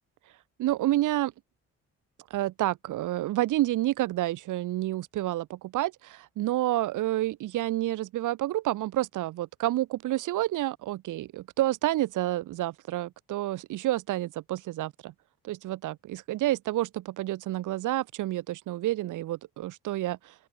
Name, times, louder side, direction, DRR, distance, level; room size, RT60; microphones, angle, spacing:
voice 1, 0.6-1.3 2.3-15.1 15.4-20.3, right 15 dB, 85° right, 2.1 m, -29 dB
open air
cardioid pair, 90°, 30 cm